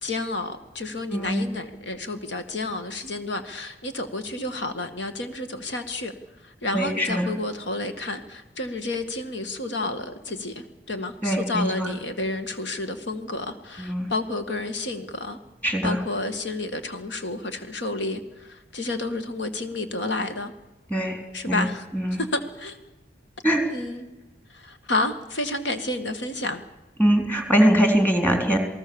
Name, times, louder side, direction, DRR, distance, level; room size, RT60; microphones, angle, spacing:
voice 1, 0.0-6.1 6.4-15.4 15.8-20.5 21.3-21.9 22.2-22.8 23.7-24.1 24.5-26.6, left 2 dB, 75° left, 8 dB, 2.1 m, -30 dB
voice 2, 1.1-1.5 6.7-7.3 11.2-11.9 13.8-14.1 15.6-16.0 20.9-21.2 21.5-22.2 23.4-23.6 27.0-28.6, equal, 10° left, 4 dB, 3.8 m, -22 dB
28.5 x 18.5 x 7.2 m, 1.1 s
head